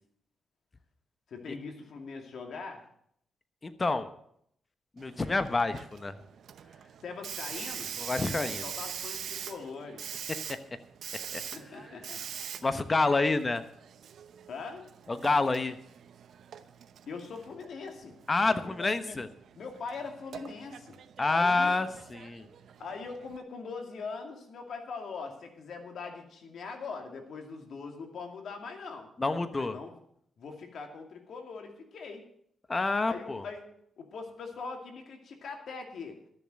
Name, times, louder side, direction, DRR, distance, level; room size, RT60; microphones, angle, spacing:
voice 1, 1.3-2.9 7.0-7.9 8.4-10.0 11.5-12.2 14.5-14.9 17.1-18.2 18.6-19.2 19.6-21.0 21.3-21.8 22.8-29.1 29.5-29.9 30.4-32.2 33.1-33.7 34.0-36.2, left 4 dB, 70° left, 4 dB, 2.4 m, -41 dB
voice 2, 3.6-4.1 5.0-6.2 8.0-8.7 10.5-10.6 11.3-11.4 12.6-13.6 15.1-15.8 18.3-19.3 21.2-22.5 29.2-29.8 32.7-33.4, left 3 dB, 30° left, 11 dB, 1.1 m, -28 dB
Hiss, 5.0-23.4, right 8 dB, 75° right, 0.8 m, -44 dB
12.5 x 7.1 x 7.7 m, 0.71 s
cardioid pair, 70°, 0 cm